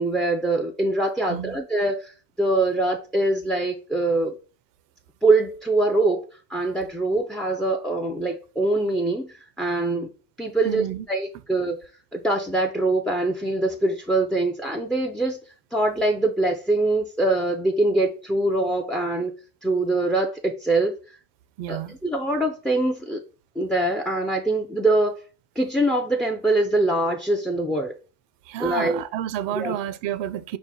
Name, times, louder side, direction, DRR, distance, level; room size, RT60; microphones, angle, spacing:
voice 1, 0.0-2.1 2.4-4.3 5.2-6.2 6.5-10.1 10.4-15.4 15.7-19.3 19.6-21.2 21.7-23.2 23.6-25.1 25.6-27.9 28.6-29.0 29.5-29.8, right 2 dB, ahead, 0.3 m, -23 dB
voice 2, 1.2-1.6 10.6-11.1 21.6-22.0 28.5-30.6, right 11 dB, 75° right, 0.5 m, -30 dB
4.7 x 2.1 x 4.0 m
supercardioid pair, 85°, 43 cm